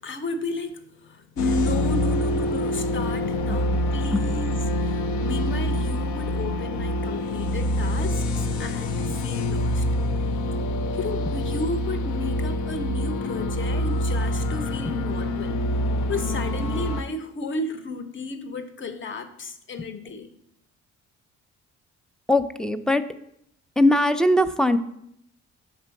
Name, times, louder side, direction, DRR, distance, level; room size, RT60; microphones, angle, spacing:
voice 1, 0.0-9.9 10.9-15.6 16.1-20.3, left 3 dB, 40° left, 10 dB, 0.8 m, -33 dB
sound 1, 1.4-17.0, left 1 dB, 75° left, 0.6 m, -26 dB
voice 2, 14.9-15.2 19.8-19.9 22.3-23.0 23.8-24.8, left 1 dB, ahead, 10 dB, 0.3 m, -21 dB
5.9 x 3.4 x 5.7 m, 0.73 s
cardioid pair, 90°, 30 cm